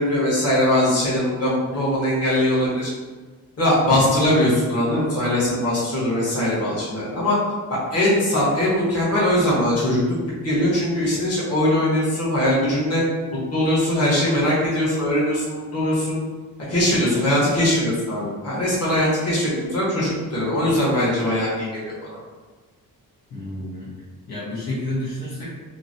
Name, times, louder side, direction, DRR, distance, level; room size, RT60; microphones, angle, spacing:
voice 1, 0.0-2.9 3.6-7.4 7.7-10.0 10.4-13.0 13.5-16.2 16.7-21.9, left 1 dB, 40° left, -7 dB, 1.3 m, -21 dB
voice 2, 23.3-23.9 24.3-25.5, left 1 dB, 85° left, -8 dB, 1.2 m, -30 dB
2.9 x 2.6 x 2.7 m, 1.3 s
cardioid pair, 105°, 36 cm